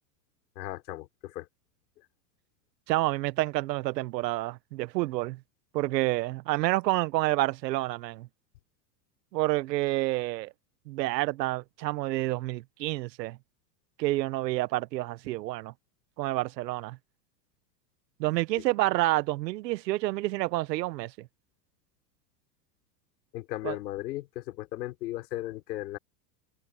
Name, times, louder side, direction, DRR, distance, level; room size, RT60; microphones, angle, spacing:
voice 1, 0.5-1.5 23.3-26.0, left 16 dB, 80° left, 5.0 m, -36 dB
voice 2, 2.9-5.4 5.7-8.3 9.3-10.5 10.9-13.4 14.0-15.7 16.2-17.0 18.2-21.3 23.6-23.7, right 18 dB, 75° right, 1.3 m, -29 dB
supercardioid pair, 140°, 50 cm